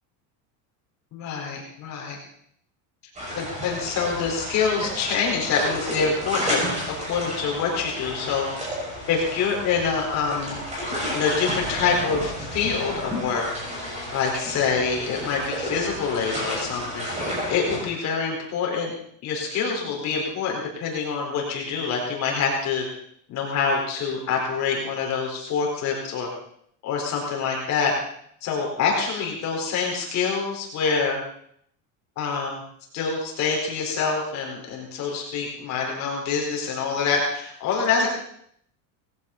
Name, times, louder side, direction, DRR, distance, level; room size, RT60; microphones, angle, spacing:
voice 1, 1.1-2.2 3.4-8.5 9.1-10.6 11.1-13.5 14.1-18.9 19.2-22.8 23.3-26.3 26.8-27.9 28.4-31.2 32.2-32.6 32.9-38.1, left 5 dB, 40° left, -1 dB, 4.5 m, -26 dB
sound 1, 3.1-17.8, equal, 15° right, 6.6 m, -32 dB
19.0 x 15.5 x 4.2 m, 0.66 s
cardioid pair, 170°, 42 cm